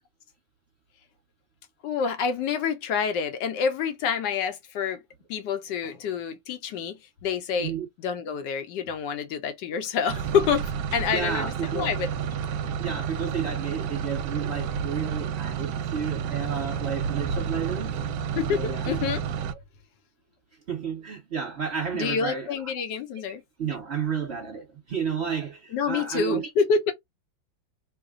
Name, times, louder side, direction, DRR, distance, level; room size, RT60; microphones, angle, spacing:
voice 1, 1.8-5.0 5.3-7.7 8.0-12.1 18.4-19.2 21.9-23.4 25.7-26.9, left 6 dB, 75° left, 1.2 m, -27 dB
sound 1, 10.1-19.5, right 7 dB, 75° right, 1.2 m, -30 dB
voice 2, 11.1-11.9 12.8-18.0 18.5-18.9 20.7-22.6 23.6-26.5, right 7 dB, 40° right, 1.1 m, -31 dB
3.2 x 2.1 x 3.6 m
omnidirectional pair, 2.1 m